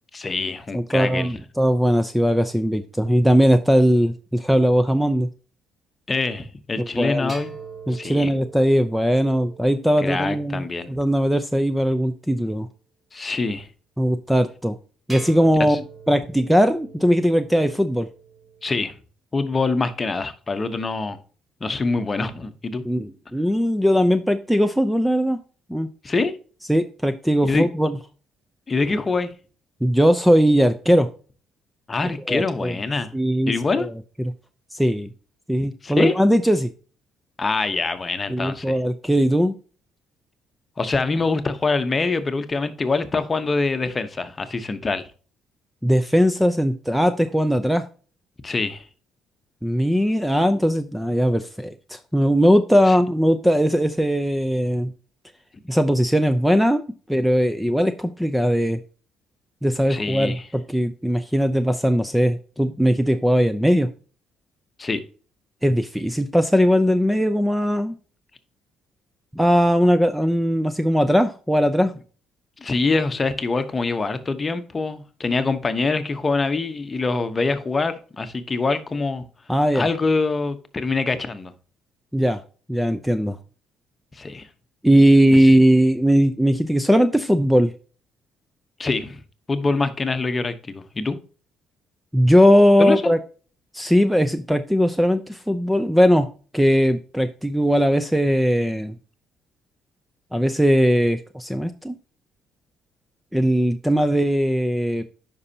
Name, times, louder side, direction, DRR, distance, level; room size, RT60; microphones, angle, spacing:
voice 1, 0.1-1.3 6.1-7.5 7.9-8.3 10.0-10.9 13.1-13.7 15.7-15.8 18.6-18.9 19.3-21.2 21.6-22.8 26.0-26.3 27.4-27.7 28.7-29.3 31.9-33.1 33.5-33.9 35.8-36.2 37.4-38.8 40.8-45.1 48.4-48.9 52.9-53.0 59.9-60.4 64.8-65.0 72.6-79.2 79.7-81.5 84.1-84.5 85.3-85.4 88.8-89.2 89.5-91.2 92.8-93.1, left 3 dB, 30° left, 1.0 m, -24 dB
voice 2, 0.7-5.3 6.8-7.3 7.9-12.7 14.0-14.8 15.1-18.1 22.8-25.4 25.7-25.9 26.7-28.0 29.8-31.1 32.3-32.7 33.1-33.9 34.7-35.1 35.5-36.7 38.3-39.6 45.8-47.8 49.6-54.9 55.7-56.8 57.1-58.8 59.6-63.9 65.6-67.9 69.3-71.9 79.5-79.9 82.1-82.4 82.7-83.4 84.8-87.7 92.1-93.2 93.7-96.3 96.5-99.0 100.3-102.0 103.3-105.0, equal, 5° right, 0.6 m, -19 dB
sound 1, 7.3-11.6 15.1-18.9, right 4 dB, 20° right, 2.5 m, -43 dB
9.6 x 5.4 x 2.8 m
cardioid pair, 85°, 0 cm